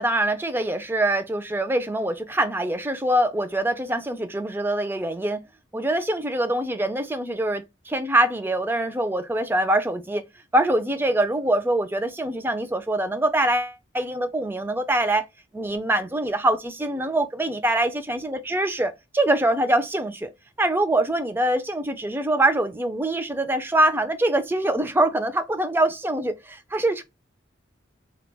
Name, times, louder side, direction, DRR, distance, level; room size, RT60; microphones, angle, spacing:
voice 1, 0.0-5.4 5.7-10.2 10.5-15.3 15.5-20.3 20.6-27.0, right 1 dB, 10° right, 0.3 m, -24 dB
2.2 x 2.2 x 3.2 m
head